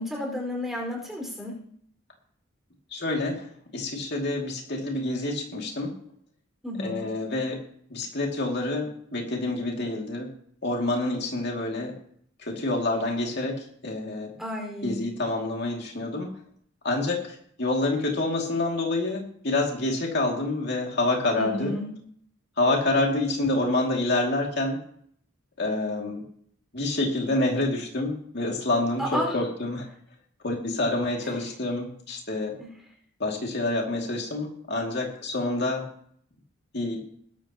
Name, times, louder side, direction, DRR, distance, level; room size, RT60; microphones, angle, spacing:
voice 1, 0.0-1.6 6.6-7.1 14.4-15.0 21.4-21.9 29.0-29.3 32.6-32.7, left 1 dB, ahead, -1 dB, 5.0 m, -31 dB
voice 2, 2.9-6.0 6.8-7.6 7.9-10.3 10.6-12.0 12.4-14.3 14.8-16.3 16.8-21.7 22.6-24.8 25.6-26.2 26.7-29.9 30.4-32.6 33.2-35.9 36.7-37.1, left 2 dB, 55° left, 0 dB, 2.5 m, -27 dB
21.0 x 12.0 x 3.0 m, 0.62 s
head